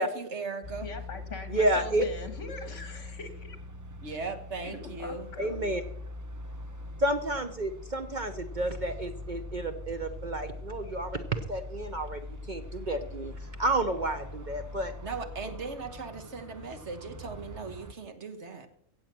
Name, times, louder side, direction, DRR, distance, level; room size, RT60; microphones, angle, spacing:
voice 1, 0.0-0.9 4.0-5.3 15.0-18.7, right 4 dB, 60° right, 7 dB, 1.7 m, -38 dB
sound 1, 0.6-17.9, left 2 dB, 20° right, 0.6 m, -42 dB
voice 2, 0.8-3.6 4.6-5.6, left 3 dB, 65° left, 9 dB, 2.1 m, -42 dB
voice 3, 1.5-2.0 5.4-5.8 7.0-12.2 12.5-13.3 13.6-14.9, right 1 dB, 40° right, 8 dB, 0.9 m, -30 dB
16.0 x 8.1 x 6.1 m, 0.67 s
omnidirectional pair, 1.4 m